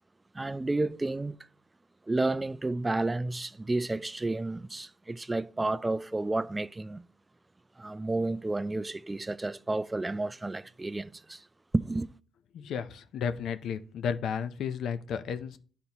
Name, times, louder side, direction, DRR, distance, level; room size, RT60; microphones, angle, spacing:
voice 1, 0.3-1.4 2.1-7.0 7.8-11.4 11.7-12.1, right 2 dB, 15° right, 0.3 m, -31 dB
voice 2, 12.5-15.6, left 7 dB, 70° left, 0.5 m, -33 dB
10.0 x 4.1 x 2.9 m
cardioid pair, 90°, 0 cm